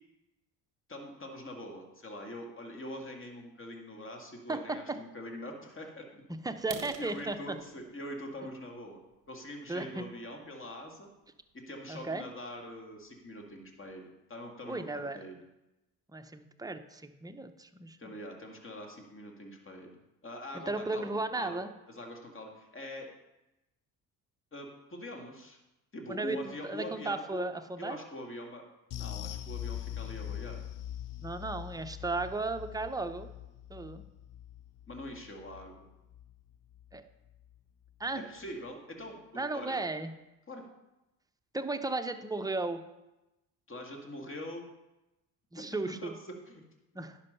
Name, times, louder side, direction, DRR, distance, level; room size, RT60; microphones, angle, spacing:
voice 1, 0.9-6.2 7.0-9.0 9.3-11.1 11.5-15.4 18.0-20.0 20.2-21.6 21.9-23.1 24.5-25.6 25.9-27.4 27.8-28.6 29.0-30.6 34.9-35.9 38.1-39.8 40.5-40.6 43.7-44.6 45.6-46.6 46.9-47.0, left 1 dB, 25° left, 2 dB, 2.1 m, -44 dB
voice 2, 4.5-5.0 6.4-7.6 9.7-10.1 11.9-12.2 14.7-15.2 16.1-18.0 20.5-21.7 26.1-28.0 31.2-33.3 33.7-34.0 36.9-37.0 38.0-38.2 39.4-40.1 41.5-42.8 45.5-46.1 46.9-47.2, right 3 dB, 10° right, 7 dB, 0.7 m, -35 dB
sound 1, 6.6-10.3 10.9-11.1 11.5-11.6 12.1-12.2 12.5-12.6 13.1-13.2 13.4-13.9, right 9 dB, 40° right, 1.0 m, -48 dB
sound 2, 28.9-37.6 37.9-38.1 38.5-38.6, left 11 dB, 40° left, 0.6 m, -43 dB
10.5 x 5.5 x 5.5 m, 0.97 s
hypercardioid pair, 55°, 49 cm